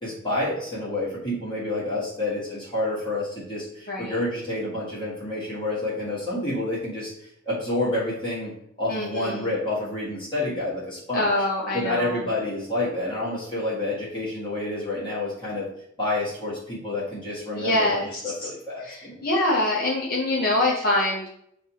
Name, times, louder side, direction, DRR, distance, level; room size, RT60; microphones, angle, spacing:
voice 1, 0.0-7.1 7.4-8.5 8.8-11.3 11.7-15.7 16.0-19.2, left 2 dB, 25° left, -8 dB, 1.3 m, -29 dB
voice 2, 8.9-9.5 11.1-12.2 17.6-18.5 18.8-21.3, left 1 dB, 45° left, -4 dB, 0.7 m, -25 dB
6.6 x 2.5 x 2.8 m, 0.71 s
head